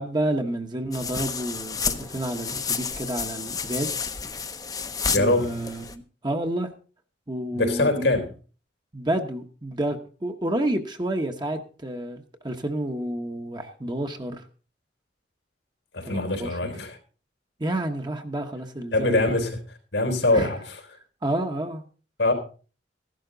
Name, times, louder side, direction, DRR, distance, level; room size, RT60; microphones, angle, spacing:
voice 1, 0.0-3.9 5.2-6.7 7.3-8.1 8.9-14.4 16.0-16.7 17.6-19.3 20.3-20.5 21.2-21.8, right 1 dB, 25° right, 1.1 m, -29 dB
sound 1, 0.9-5.9, left 5 dB, 20° left, 0.8 m, -31 dB
voice 2, 5.1-5.6 7.5-8.3 15.9-17.0 18.9-19.6 19.9-20.8 22.2-22.3, left 2 dB, 90° left, 3.8 m, -23 dB
15.0 x 11.5 x 3.9 m
head